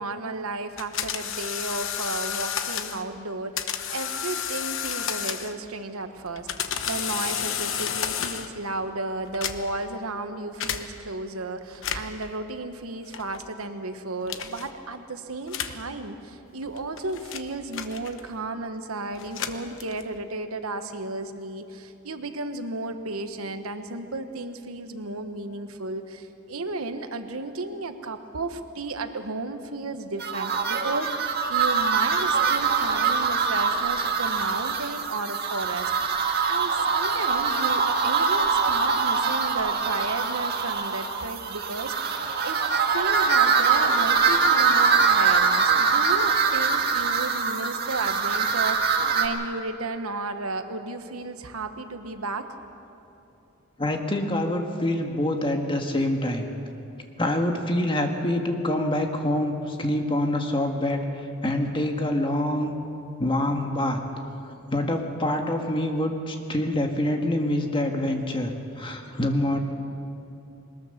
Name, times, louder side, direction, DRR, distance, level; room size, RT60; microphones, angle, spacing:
voice 1, 0.0-36.2 36.4-52.5, right 3 dB, 85° right, 8 dB, 1.2 m, -33 dB
sound 1, 0.8-3.0 3.6-5.7 6.3-8.6 9.3-9.9 10.6-10.8 11.7-12.2 13.1-13.5 14.3-14.7 15.5-15.8 16.6-18.4 19.1-20.2, left 8 dB, 65° left, 1.0 m, -31 dB
sound 2, 30.2-49.3, right 5 dB, 50° right, 1.7 m, -23 dB
voice 2, 53.8-56.5 57.2-61.0 61.4-62.8 63.2-64.0 64.7-69.6, left 1 dB, 25° left, 3 dB, 1.7 m, -26 dB
21.0 x 20.0 x 6.7 m, 2.8 s
head